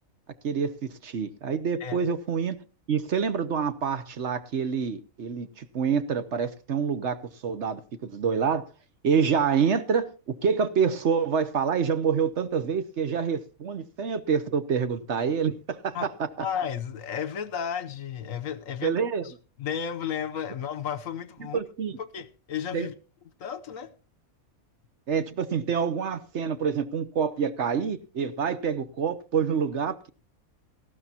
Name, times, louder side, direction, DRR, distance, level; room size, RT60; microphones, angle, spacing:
voice 1, 0.4-2.6 2.9-7.2 7.4-8.6 9.0-16.3 18.8-19.2 21.5-22.0 22.7-22.9 25.1-30.1, right 6 dB, 55° right, 1.1 m, -27 dB
voice 2, 16.4-19.3 19.6-21.6 22.0-22.9 23.4-23.9, left 8 dB, 70° left, 1.2 m, -33 dB
18.5 x 14.5 x 2.8 m
omnidirectional pair, 1.5 m